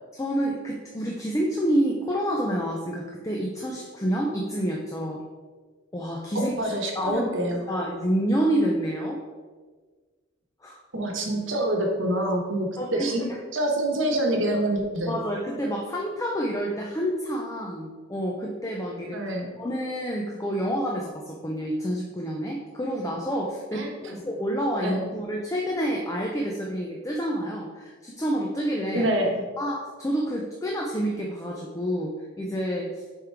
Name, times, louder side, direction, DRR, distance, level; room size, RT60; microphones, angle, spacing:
voice 1, 0.1-5.2 5.9-7.2 7.7-9.2 10.6-10.8 12.8-13.4 15.1-19.3 19.6-29.1 29.6-33.0, equal, 15° left, -1 dB, 0.5 m, -28 dB
voice 2, 6.6-7.6 10.9-13.3 13.5-15.2 19.1-19.5 23.7-24.2 24.8-25.1 28.9-29.4, right 1 dB, 70° right, 2 dB, 1.1 m, -26 dB
6.8 x 3.7 x 4.6 m, 1.4 s
head